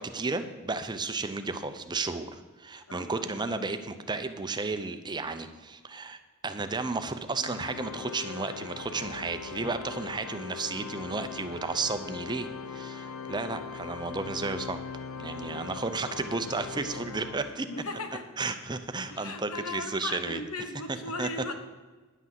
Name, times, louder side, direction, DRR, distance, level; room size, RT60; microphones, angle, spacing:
voice 1, 0.0-2.3 2.6-14.8 15.2-17.7 18.4-20.4 20.9-21.5, right 3 dB, 20° right, 8 dB, 0.6 m, -33 dB
voice 2, 2.9-3.3 17.7-18.3 19.1-21.5, left 3 dB, 85° left, 6 dB, 1.3 m, -37 dB
Organ, 7.4-18.0, left 6 dB, 70° left, 0.6 m, -41 dB
10.0 x 6.1 x 7.5 m, 1.3 s
head